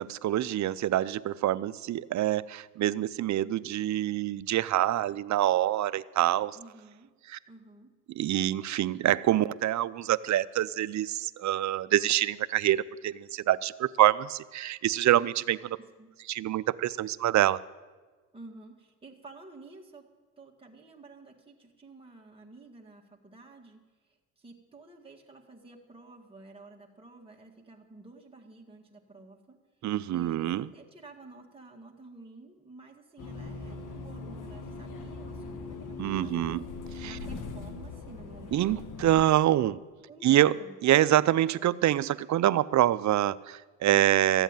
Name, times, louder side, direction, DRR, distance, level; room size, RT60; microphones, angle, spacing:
voice 1, 0.0-6.6 7.3-7.4 8.2-15.8 16.3-17.6 29.8-30.7 36.0-36.6 37.0-37.2 38.5-39.8 40.2-40.6 40.8-44.4, right 13 dB, 50° right, 17 dB, 0.5 m, -26 dB
voice 2, 6.5-7.1 7.5-7.9 16.0-16.1 18.3-20.1 20.4-36.7 37.0-39.3 40.1-40.8, right 2 dB, 15° right, 0 dB, 1.9 m, -51 dB
sound 1, 33.2-39.2, left 4 dB, 55° left, 1.6 m, -40 dB
14.0 x 8.0 x 9.0 m, 1.3 s
supercardioid pair, 80°, 37 cm